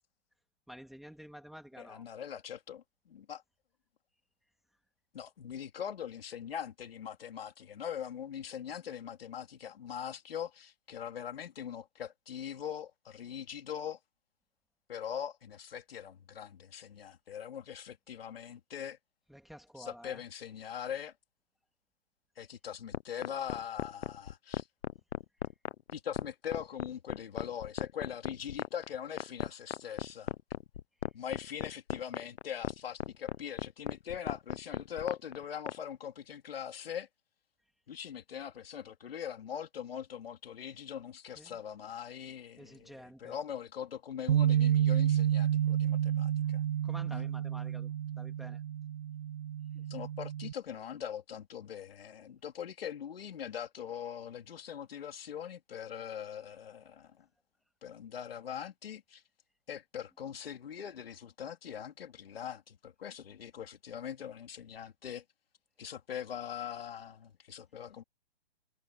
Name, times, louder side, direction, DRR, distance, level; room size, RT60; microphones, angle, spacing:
voice 1, 0.7-2.0 19.3-20.2 41.4-41.6 42.6-43.4 46.8-48.6, equal, ahead, 2.4 m, -50 dB
voice 2, 1.8-3.4 5.1-14.0 14.9-19.0 19.8-21.1 22.4-24.7 25.9-30.3 31.1-37.1 37.9-46.6 47.1-47.3 49.8-57.3 57.8-59.2 59.7-65.2 65.8-68.0, left 9 dB, 60° left, 3.7 m, -42 dB
sound 1, 22.9-35.8, left 9 dB, 90° left, 0.8 m, -36 dB
Bass guitar, 44.3-50.5, right 10 dB, 50° right, 0.6 m, -30 dB
hypercardioid pair, 170°, 33 cm